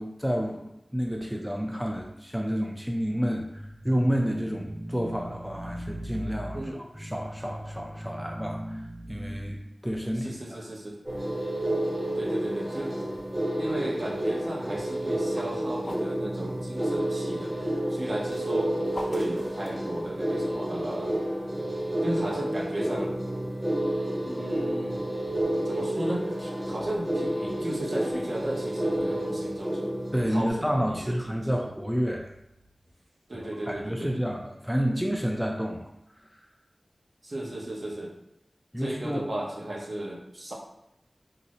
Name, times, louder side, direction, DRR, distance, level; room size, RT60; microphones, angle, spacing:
voice 1, 0.0-10.4 30.1-32.3 33.3-36.3 38.7-39.2, equal, 5° right, 1 dB, 0.3 m, -30 dB
voice 2, 10.2-11.0 12.2-13.0 13.6-17.6 17.9-21.1 22.0-23.2 24.3-25.0 25.6-30.0 30.3-31.5 33.3-34.2 37.2-38.1 38.8-40.5, right 1 dB, 55° right, -3 dB, 0.7 m, -35 dB
sound 1, 11.0-30.5, right 1 dB, 30° right, 0.9 m, -30 dB
sound 2, 14.9-17.0 17.9-20.3, left 1 dB, 50° left, 0.5 m, -42 dB
3.7 x 2.0 x 2.8 m, 0.84 s
wide cardioid pair, 75°, 0 cm